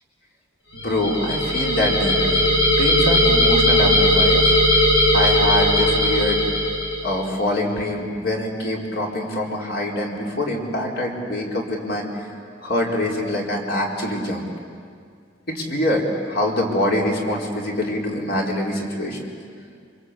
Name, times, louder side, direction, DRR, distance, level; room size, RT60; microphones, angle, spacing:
voice 1, 0.7-2.4 2.8-4.9 5.1-6.4 7.0-12.1 12.6-14.5 15.5-19.3, left 1 dB, 55° left, -1 dB, 4.5 m, -24 dB
sound 1, 0.8-7.2, left 1 dB, 75° left, 7.4 m, -18 dB
28.0 x 25.0 x 8.4 m, 2.2 s
head